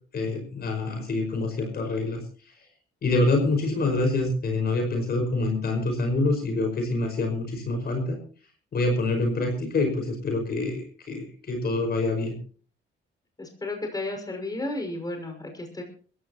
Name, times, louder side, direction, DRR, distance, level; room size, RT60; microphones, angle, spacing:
voice 1, 0.1-2.2 3.0-8.2 8.7-12.4, left 2 dB, 50° left, 4 dB, 5.4 m, -26 dB
voice 2, 13.4-15.8, left 2 dB, 20° left, 3 dB, 5.9 m, -33 dB
21.5 x 15.5 x 3.0 m, 0.41 s
cardioid pair, 90°, 20 cm